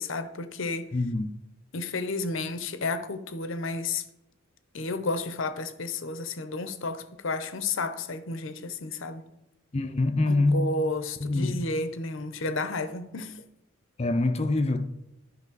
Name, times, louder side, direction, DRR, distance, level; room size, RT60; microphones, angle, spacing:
voice 1, 0.0-0.9 1.7-4.0 4.7-9.2 10.3-13.4, left 3 dB, 65° left, 0.8 m, -32 dB
voice 2, 0.9-1.3 9.7-10.7 11.2-11.6 14.0-14.9, left 2 dB, 30° left, 0.5 m, -25 dB
11.0 x 5.4 x 4.0 m
head